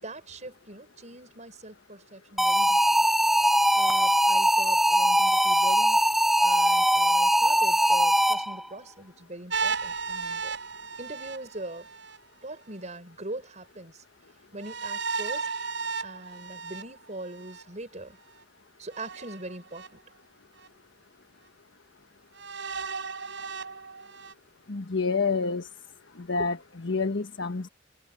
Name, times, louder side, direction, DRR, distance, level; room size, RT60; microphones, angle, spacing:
voice 1, 0.0-3.0 3.7-6.0 6.4-10.6 11.0-11.9 12.4-14.0 14.5-15.5 16.0-18.2 18.8-20.0, right 2 dB, 40° right, 6.7 m, -41 dB
sound 1, 2.4-8.7, equal, ahead, 0.3 m, -21 dB
sound 2, 9.5-12.2 14.6-17.6 18.9-19.9 20.6-20.7 22.3-24.3, right 5 dB, 75° right, 4.9 m, -34 dB
voice 2, 24.7-25.7 26.2-27.7, left 4 dB, 75° left, 1.4 m, -28 dB
head